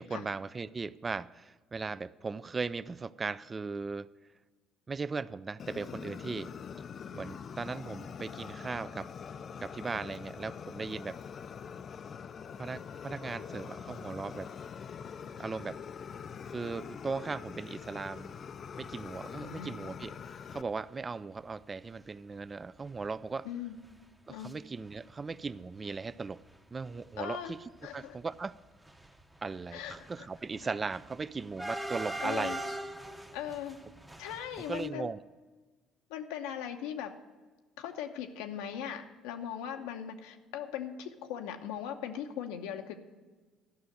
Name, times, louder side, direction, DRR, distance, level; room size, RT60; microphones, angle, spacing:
voice 1, 0.0-4.1 4.9-6.5 7.1-9.1 9.6-11.2 12.6-14.5 15.4-15.8 16.4-18.4 18.8-23.5 24.3-26.4 26.7-27.6 27.9-28.5 29.4-32.6 34.7-35.2, right 4 dB, 30° right, 18 dB, 0.4 m, -38 dB
Fire, 5.6-20.6, left 7 dB, 45° left, 0.4 m, -44 dB
sound 1, 18.9-19.1 19.6-19.7 19.9-20.1 20.8-20.9 21.4-21.6 21.8-21.9 22.3-24.5 24.8-25.5 25.8-34.9, right 1 dB, 10° right, 0.8 m, -43 dB
voice 2, 19.3-19.7 23.4-23.8 24.3-24.5 27.2-27.5 27.8-28.2 29.7-30.3 32.2-32.6 33.3-33.8 34.2-35.1 36.1-37.1 37.8-43.0, left 9 dB, 85° left, 6 dB, 0.9 m, -39 dB
12.5 x 5.8 x 7.8 m, 1.3 s
supercardioid pair, 85°, 0 cm